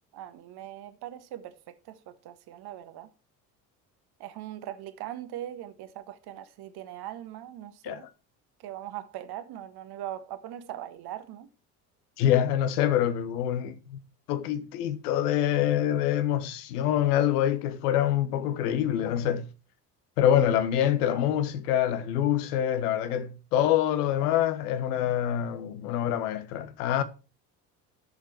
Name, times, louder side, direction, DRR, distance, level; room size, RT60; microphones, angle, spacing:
voice 1, 0.1-3.1 4.2-8.1 8.6-11.5, right 12 dB, 50° right, 1.4 m, -40 dB
voice 2, 12.2-14.0 14.3-19.5 20.2-27.0, left 10 dB, 65° left, 1.2 m, -25 dB
13.0 x 6.8 x 4.5 m
figure-of-eight pair, 55°, 49 cm